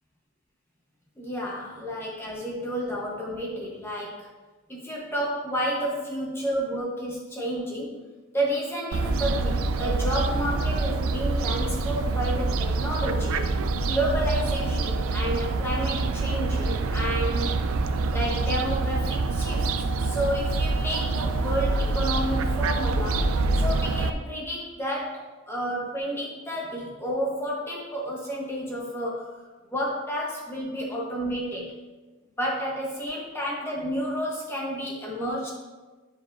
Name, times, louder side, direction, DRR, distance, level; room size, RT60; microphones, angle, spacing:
voice 1, 1.2-4.3 4.7-8.0 8.3-13.5 13.9-17.6 18.1-19.7 20.0-29.3 29.7-31.8 32.4-35.5, equal, 10° left, -3 dB, 0.9 m, -31 dB
Fowl, 8.9-24.1, right 3 dB, 90° right, 0.4 m, -26 dB
9.7 x 5.1 x 2.5 m, 1.3 s
head